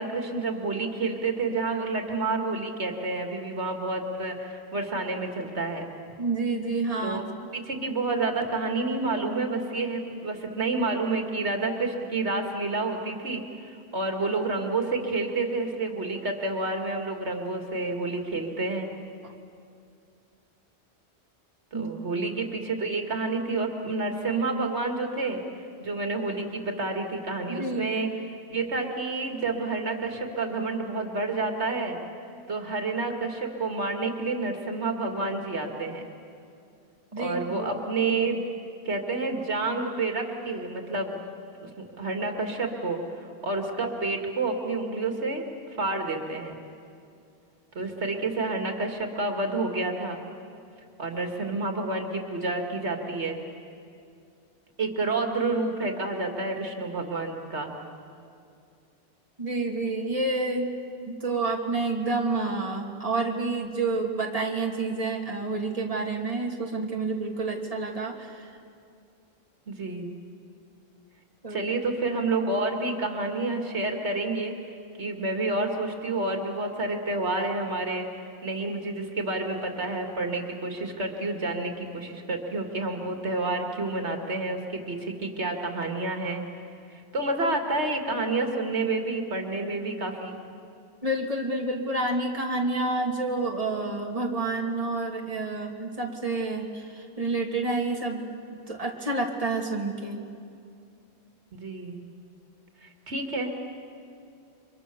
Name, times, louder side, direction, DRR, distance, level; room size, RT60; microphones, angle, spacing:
voice 1, 0.0-5.9 7.0-7.2 7.5-18.9 21.7-25.4 25.8-28.1 28.5-32.0 32.5-36.0 37.2-38.4 38.8-41.2 41.6-43.0 43.4-45.4 45.8-46.6 47.7-50.2 51.0-53.4 54.8-57.7 69.7-70.1 71.5-74.5 75.0-78.1 78.4-86.4 86.9-90.4 101.5-102.0 102.8-103.5, right 3 dB, 90° right, 3 dB, 2.5 m, -29 dB
voice 2, 6.2-7.2 19.2-19.3 21.7-21.9 27.5-27.9 37.1-37.7 59.4-60.7 61.1-68.6 71.4-71.7 91.0-98.2 98.5-100.2, right 3 dB, 35° right, 0 dB, 2.5 m, -29 dB
29.5 x 25.0 x 6.9 m, 2.4 s
omnidirectional pair, 1.1 m